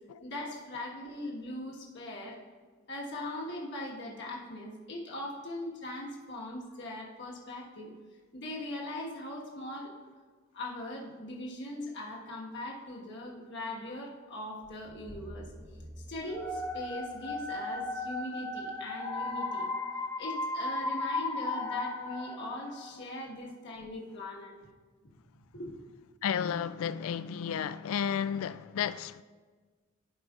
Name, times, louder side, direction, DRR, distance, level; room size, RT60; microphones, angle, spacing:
voice 1, 0.2-2.4 2.9-7.9 8.3-9.9 10.5-15.5 16.1-19.7 20.2-24.5 25.5-25.7, left 1 dB, 55° left, 1.4 m, -40 dB
sound 1, 14.6-18.8, equal, 40° right, 2.3 m, -50 dB
sound 2, 16.3-23.1, left 2 dB, 15° left, 0.6 m, -35 dB
voice 2, 26.2-29.2, left 8 dB, 75° left, 0.3 m, -32 dB
15.0 x 5.0 x 2.4 m
head